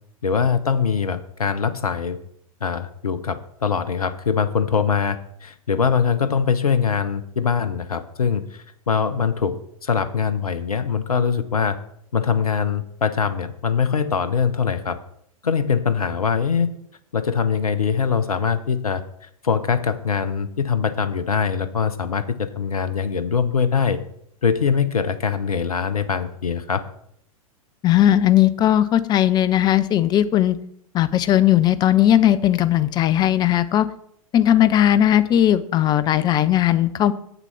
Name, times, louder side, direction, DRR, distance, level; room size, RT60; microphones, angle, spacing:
voice 1, 0.2-2.2 2.6-11.8 12.1-15.0 15.4-16.7 17.1-19.0 19.4-24.0 24.4-26.8, left 6 dB, 80° left, 12 dB, 0.7 m, -22 dB
voice 2, 27.8-30.6 30.9-33.9 34.3-37.1, left 11 dB, 20° left, 15 dB, 0.5 m, -17 dB
7.4 x 6.8 x 5.8 m, 0.70 s
figure-of-eight pair, 95°, 19 cm